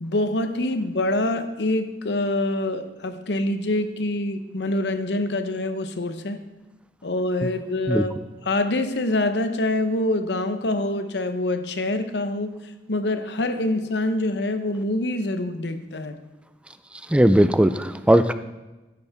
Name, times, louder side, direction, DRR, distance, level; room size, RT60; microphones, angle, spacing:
voice 1, 0.0-6.4 7.0-8.2 8.5-12.5 12.9-16.2, left 2 dB, 70° left, 9 dB, 0.9 m, -25 dB
voice 2, 17.1-18.3, right 1 dB, 5° right, 11 dB, 0.3 m, -18 dB
12.5 x 11.0 x 3.6 m, 1.1 s
head